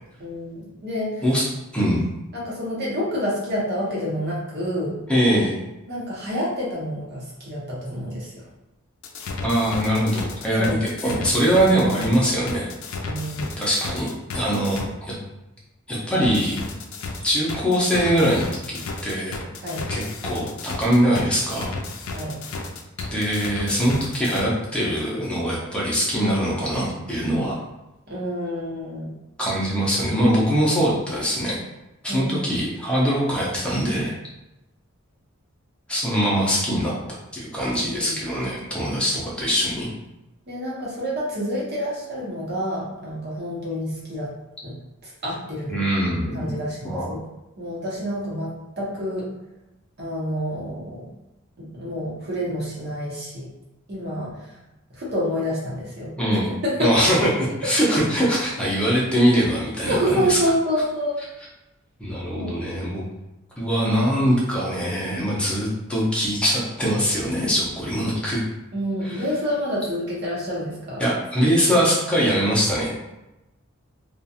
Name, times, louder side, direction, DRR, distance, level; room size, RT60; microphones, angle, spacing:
voice 1, 0.2-1.2 2.3-5.0 5.9-8.3 10.6-10.8 13.0-13.5 14.5-14.7 19.6-19.8 22.1-22.4 28.1-29.1 32.1-32.7 37.6-38.2 40.5-44.3 44.6-44.7 45.0-45.8 46.3-47.2 47.6-49.3 50.0-51.0 51.7-53.5 53.9-54.5 54.9-56.1 56.6-57.1 59.9-61.1 62.3-63.0 68.7-71.0, equal, 55° right, -6 dB, 1.0 m, -28 dB
voice 2, 5.1-5.5 9.4-12.7 13.6-15.2 15.9-16.6 17.2-18.6 19.0-19.4 19.9-21.7 23.1-27.6 29.4-31.6 32.0-34.2 35.9-36.9 37.3-39.9 45.7-46.6 46.8-47.1 56.2-56.5 56.8-60.4 62.0-63.0 63.6-68.4 69.0-69.3 71.0-72.9, equal, 5° left, -6 dB, 0.6 m, -22 dB
sound 1, 9.0-14.8 16.2-24.4, left 3 dB, 85° left, 0.4 m, -33 dB
2.5 x 2.4 x 2.7 m, 0.95 s
head